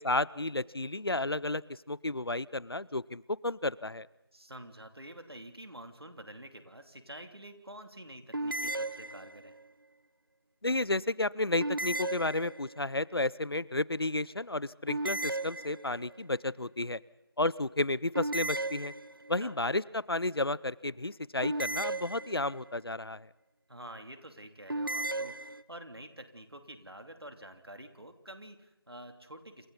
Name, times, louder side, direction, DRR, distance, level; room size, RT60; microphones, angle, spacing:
voice 1, 0.0-4.1 10.6-17.0 17.4-18.9 19.3-23.3, left 2 dB, 70° left, 22 dB, 0.7 m, -32 dB
voice 2, 4.3-9.5 19.4-19.5 23.7-29.7, right 1 dB, 75° right, 7 dB, 3.1 m, -48 dB
sound 1, 8.3-9.6 11.6-12.9 14.9-16.2 18.1-19.4 21.4-22.7 24.7-25.6, right 2 dB, 60° right, 0.8 m, -35 dB
28.0 x 25.5 x 4.1 m, 0.98 s
figure-of-eight pair, 175°, 13 cm